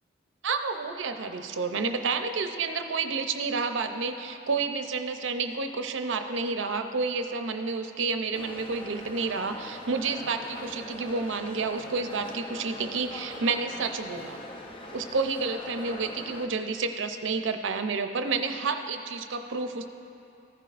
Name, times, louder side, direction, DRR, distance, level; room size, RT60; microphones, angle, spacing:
voice 1, 0.4-14.4 14.9-19.9, right 4 dB, 75° right, 7 dB, 0.6 m, -30 dB
sound 1, 8.3-16.5, left 1 dB, 25° left, 0.6 m, -42 dB
15.5 x 10.0 x 2.5 m, 2.9 s
head